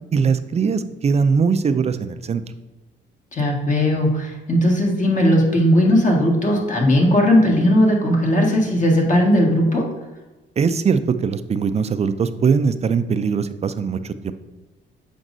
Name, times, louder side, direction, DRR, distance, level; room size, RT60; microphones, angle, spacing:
voice 1, 0.1-2.4 10.6-14.3, right 5 dB, 35° right, 11 dB, 0.4 m, -21 dB
voice 2, 3.3-9.8, equal, 40° left, 0 dB, 1.6 m, -17 dB
7.4 x 5.2 x 2.6 m, 1.1 s
cardioid pair, 90°, 20 cm